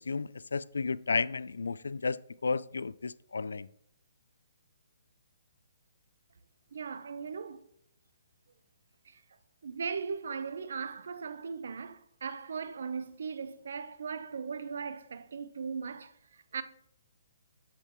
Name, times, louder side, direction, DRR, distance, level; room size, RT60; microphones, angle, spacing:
voice 1, 0.0-3.7, left 4 dB, 90° left, 0.3 m, -33 dB
voice 2, 6.7-7.6 9.0-9.2 9.6-16.6, right 5 dB, 70° right, 0.7 m, -38 dB
9.8 x 7.6 x 3.0 m
hypercardioid pair, 150°, 0 cm